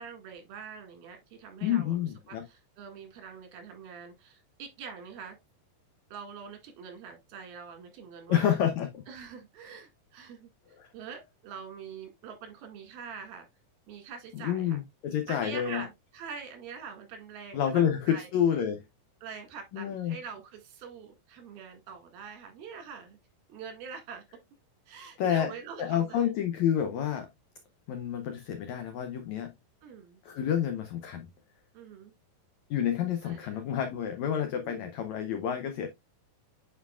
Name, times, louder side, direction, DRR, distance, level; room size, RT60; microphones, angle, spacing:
voice 1, 0.0-2.0 2.3-5.4 6.1-8.6 9.1-10.5 10.9-13.5 13.9-14.8 15.3-18.3 19.2-23.2 23.5-24.2 24.9-26.4 29.8-30.2 31.7-32.1 33.2-33.6 34.5-34.9, right 6 dB, 80° right, 3.8 m, -44 dB
voice 2, 1.6-2.4 8.3-9.0 10.8-10.9 14.3-15.8 17.5-18.8 19.7-20.2 25.2-25.5 25.8-27.3 27.9-29.5 30.2-31.3 32.7-35.9, left 9 dB, 85° left, 1.6 m, -29 dB
9.0 x 4.8 x 2.3 m
omnidirectional pair, 4.2 m